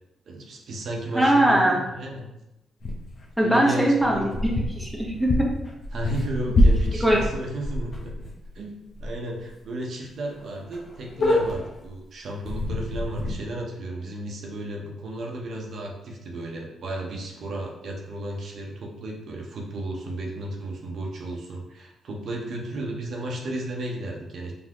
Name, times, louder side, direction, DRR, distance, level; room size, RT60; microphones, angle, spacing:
voice 1, 0.3-2.3 3.4-4.4 5.9-8.1 8.5-24.5, right 1 dB, 65° right, 0 dB, 0.8 m, -34 dB
voice 2, 1.1-1.8 3.4-5.5 7.0-7.2, right 1 dB, ahead, -2 dB, 1.0 m, -21 dB
sound 1, 2.8-3.3 4.0-8.5 8.9-9.1 9.4-9.5 10.0-10.1 10.3-10.4 10.7-11.9 12.4-13.3, left 1 dB, 60° left, 0.9 m, -25 dB
4.0 x 3.5 x 3.0 m, 0.92 s
cardioid pair, 80°, 0 cm